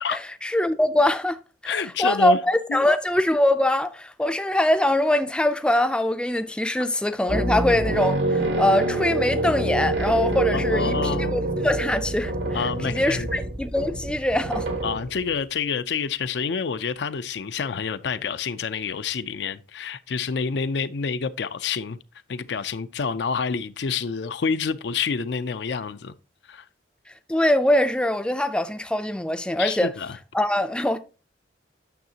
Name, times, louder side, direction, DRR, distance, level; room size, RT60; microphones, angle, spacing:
voice 1, 0.1-14.7 27.3-29.9 30.3-31.0, left 1 dB, 5° left, 0.4 m, -23 dB
voice 2, 1.7-2.4 2.7-2.9 10.5-11.3 12.5-13.3 14.8-22.0 22.3-26.1 26.5-26.6 29.6-30.2, left 5 dB, 70° left, 0.4 m, -28 dB
sound 1, 7.3-15.3, right 1 dB, 85° right, 1.4 m, -26 dB
9.3 x 6.3 x 2.8 m
head